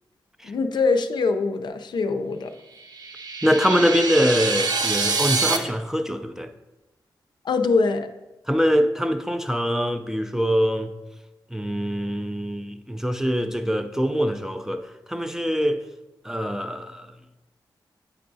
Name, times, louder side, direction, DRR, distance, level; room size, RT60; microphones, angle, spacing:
voice 1, 0.4-2.5 7.4-8.1, left 4 dB, 65° left, 0.5 m, -23 dB
sound 1, 2.8-5.6, right 4 dB, 55° right, 0.6 m, -25 dB
voice 2, 3.4-6.5 8.5-10.9 11.5-15.8 16.2-17.1, equal, 5° right, 0.3 m, -23 dB
8.5 x 4.6 x 2.6 m
wide cardioid pair, 105°, 8 cm